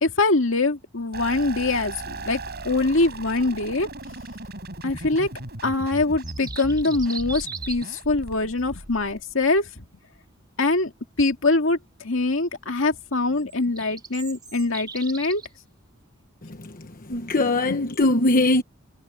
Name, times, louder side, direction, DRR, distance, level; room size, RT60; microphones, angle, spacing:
voice 1, 0.0-4.2 4.8-5.3 5.6-9.9 10.6-10.9 11.2-15.4 17.7-17.8, left 2 dB, 70° left, 2.2 m, -23 dB
sound 1, 1.1-9.6, right 2 dB, 50° right, 7.1 m, -37 dB
sound 2, 6.0-8.0 13.4-15.5, right 5 dB, 20° right, 2.9 m, -38 dB
voice 2, 16.4-18.6, left 2 dB, 45° left, 1.1 m, -22 dB
head